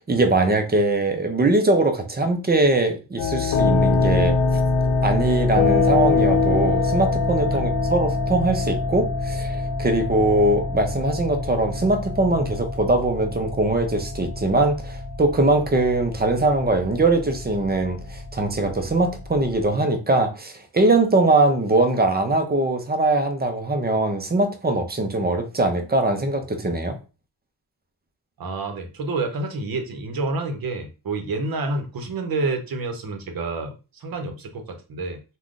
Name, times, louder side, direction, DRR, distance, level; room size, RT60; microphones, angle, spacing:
voice 1, 0.1-4.4 5.0-27.0, right 2 dB, 25° right, 0.5 m, -21 dB
sound 1, 3.2-19.7, left 3 dB, 60° left, 0.8 m, -24 dB
voice 2, 28.4-35.2, right 3 dB, 55° right, 0.8 m, -28 dB
3.5 x 2.2 x 2.5 m
cardioid pair, 100°, 43 cm